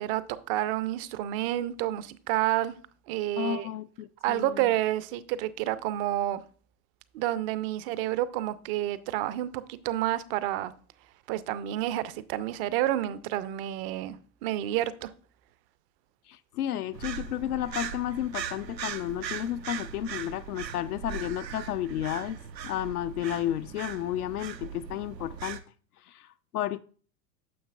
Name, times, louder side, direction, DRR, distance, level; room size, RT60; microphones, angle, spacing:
voice 1, 0.0-2.7 3.1-3.7 4.2-6.4 7.1-10.7 11.3-14.2 14.4-15.1, right 13 dB, 35° right, 0.5 m, -29 dB
voice 2, 3.4-4.7 16.3-22.4 22.6-25.6 26.1-26.8, left 12 dB, 65° left, 0.5 m, -32 dB
sound 1, 16.9-25.6, right 8 dB, 85° right, 0.7 m, -39 dB
9.3 x 7.2 x 2.4 m
figure-of-eight pair, 90°, 49 cm